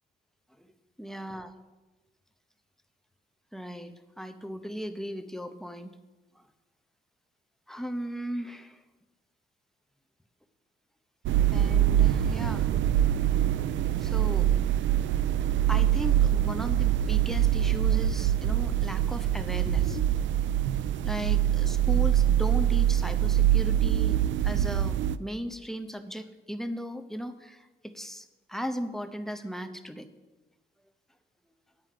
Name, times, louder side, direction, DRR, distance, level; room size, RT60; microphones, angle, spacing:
voice 1, 1.0-1.5 3.5-5.9 6.4-6.5 7.7-8.8 11.5-12.7 14.0-14.5 15.7-20.1 21.0-30.1, equal, ahead, 8 dB, 0.7 m, -37 dB
sound 1, 11.3-25.2, right 11 dB, 70° right, 0.4 m, -24 dB
9.0 x 4.4 x 7.5 m, 1.2 s
cardioid pair, 90°, 20 cm